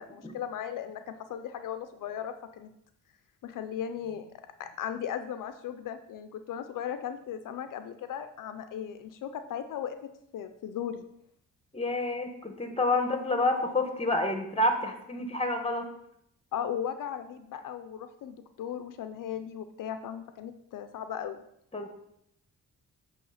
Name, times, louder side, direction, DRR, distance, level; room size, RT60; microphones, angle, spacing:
voice 1, 0.0-2.7 3.4-4.3 4.6-10.0 10.3-11.0 16.5-21.4, left 9 dB, 70° left, 9 dB, 0.5 m, -37 dB
voice 2, 11.7-15.9 21.7-21.9, left 2 dB, 20° left, 5 dB, 1.1 m, -28 dB
8.5 x 3.1 x 5.6 m, 0.76 s
cardioid pair, 100°, 33 cm